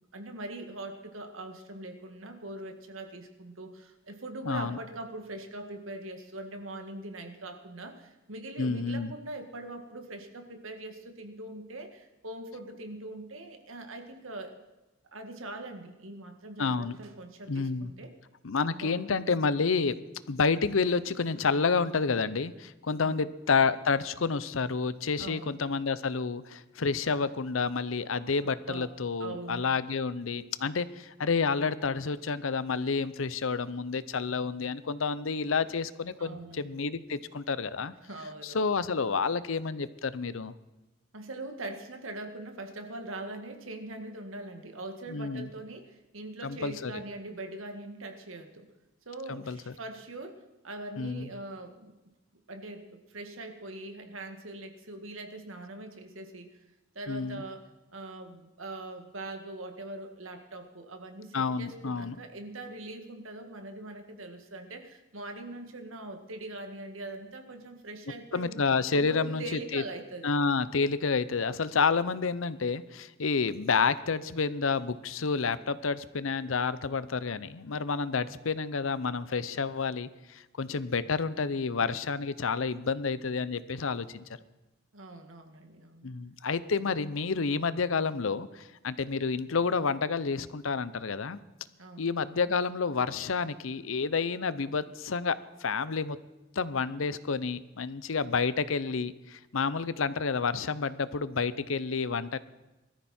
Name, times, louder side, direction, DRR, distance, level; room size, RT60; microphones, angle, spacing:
voice 1, 0.1-14.6 15.1-18.1 18.7-19.2 23.0-23.3 25.2-25.6 28.4-28.9 29.2-29.7 36.2-36.7 38.0-38.6 41.1-48.7 49.1-51.9 52.5-56.6 56.9-68.6 68.9-70.4 84.9-86.1 91.8-92.1, right 2 dB, 85° right, 5 dB, 1.9 m, -42 dB
voice 2, 4.4-4.8 8.6-9.1 16.6-17.0 17.5-17.9 18.4-19.9 20.3-37.9 38.4-40.5 45.1-45.5 46.4-47.0 49.3-49.6 51.0-51.3 57.1-57.4 61.3-62.2 68.3-69.8 70.2-84.3 86.0-91.4 92.0-96.2 96.6-102.4, left 5 dB, 80° left, 16 dB, 0.7 m, -29 dB
20.5 x 13.5 x 4.4 m, 1.0 s
head